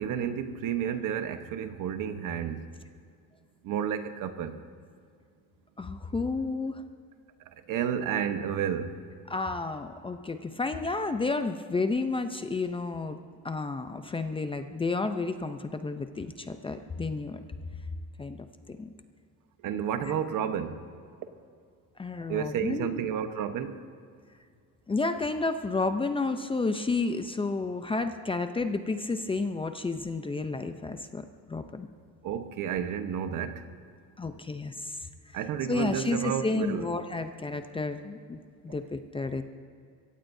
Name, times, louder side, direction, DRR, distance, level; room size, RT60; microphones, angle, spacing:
voice 1, 0.0-2.7 3.6-4.6 7.5-8.9 19.6-20.8 22.3-23.8 32.2-33.7 35.3-36.9, right 8 dB, 60° right, 8 dB, 1.2 m, -31 dB
voice 2, 5.8-6.8 9.3-13.2 13.4-17.4 18.2-18.4 18.7-18.9 20.0-20.1 22.0-23.0 24.9-31.9 34.2-35.0 35.3-35.4 35.7-39.4, left 3 dB, 15° left, 8 dB, 0.6 m, -31 dB
23.5 x 17.0 x 2.7 m, 2.2 s
cardioid pair, 140°, 35 cm